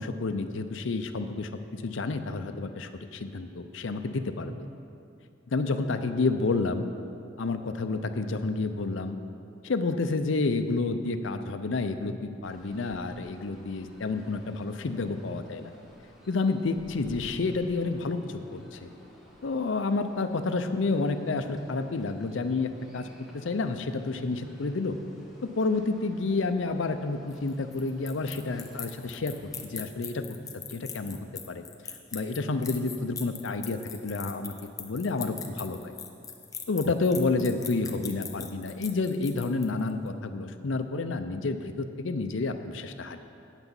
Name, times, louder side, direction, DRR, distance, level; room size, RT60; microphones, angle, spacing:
voice 1, 0.0-4.6 5.5-6.9 7.4-9.2 9.6-15.7 16.3-18.9 19.4-23.1 23.3-25.0 25.4-30.4 30.7-31.2 31.5-31.6 32.1-34.5 34.8-35.9 36.7-43.2, left 3 dB, 70° left, 8 dB, 0.6 m, -30 dB
sound 1, 12.4-29.7, equal, ahead, 1.3 m, -54 dB
sound 2, 27.3-39.9, left 7 dB, 20° left, 0.5 m, -41 dB
9.0 x 6.0 x 7.1 m, 2.5 s
head